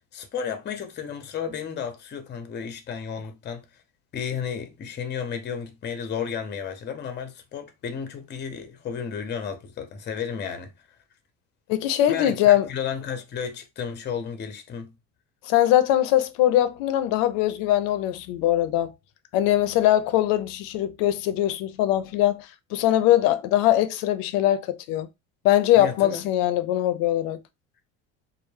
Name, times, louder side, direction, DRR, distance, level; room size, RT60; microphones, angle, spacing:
voice 1, 0.1-3.6 4.1-10.7 12.1-14.9 25.8-26.3, left 7 dB, 30° left, 0.6 m, -33 dB
voice 2, 11.7-12.7 15.4-18.9 19.3-25.1 25.4-27.4, left 13 dB, 75° left, 0.5 m, -21 dB
2.1 x 2.0 x 3.1 m
supercardioid pair, 95°, 35 cm